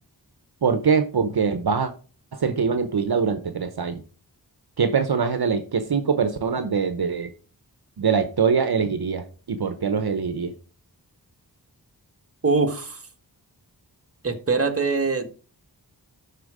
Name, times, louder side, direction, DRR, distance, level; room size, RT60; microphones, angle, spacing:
voice 1, 0.6-1.9 2.3-4.0 4.8-7.3 8.0-10.5, right 6 dB, 65° right, 9 dB, 0.9 m, -23 dB
voice 2, 12.4-13.0 14.2-15.3, right 4 dB, 35° right, 5 dB, 1.4 m, -23 dB
12.0 x 4.4 x 4.9 m, 0.38 s
wide cardioid pair, 80°, 41 cm